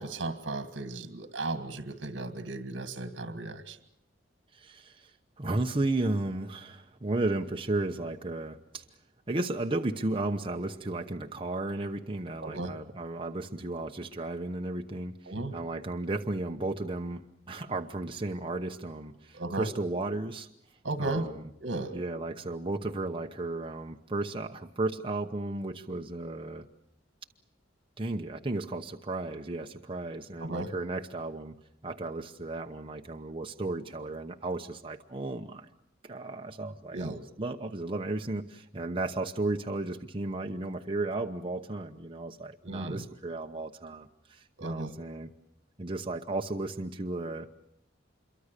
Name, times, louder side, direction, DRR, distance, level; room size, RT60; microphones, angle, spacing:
voice 1, 0.0-3.8 12.4-12.7 15.3-15.6 19.3-19.7 20.8-21.3 21.6-22.0 30.4-30.7 36.9-37.2 42.6-43.1 44.6-44.9, right 2 dB, 75° right, 10 dB, 1.9 m, -35 dB
voice 2, 4.5-8.8 9.3-20.5 21.0-21.4 21.9-26.7 28.0-31.6 31.8-35.7 36.0-45.3 45.8-47.5, right 2 dB, 30° right, 4 dB, 0.9 m, -34 dB
26.5 x 23.5 x 6.7 m, 0.77 s
head